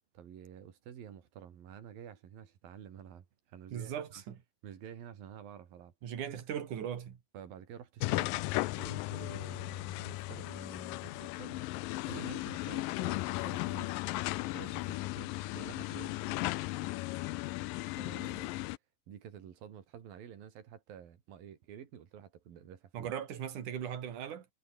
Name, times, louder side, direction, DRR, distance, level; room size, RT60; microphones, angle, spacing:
voice 1, 0.1-4.2 4.6-5.9 7.3-11.6 12.0-13.9 14.5-16.2 18.0-18.6 19.1-23.1, right 9 dB, 85° right, 4.3 m, -50 dB
voice 2, 3.7-4.4 6.0-7.2 22.9-24.5, right 9 dB, 65° right, 3.7 m, -39 dB
sound 1, 8.0-18.8, left 19 dB, 85° left, 2.3 m, -36 dB
omnidirectional pair, 4.0 m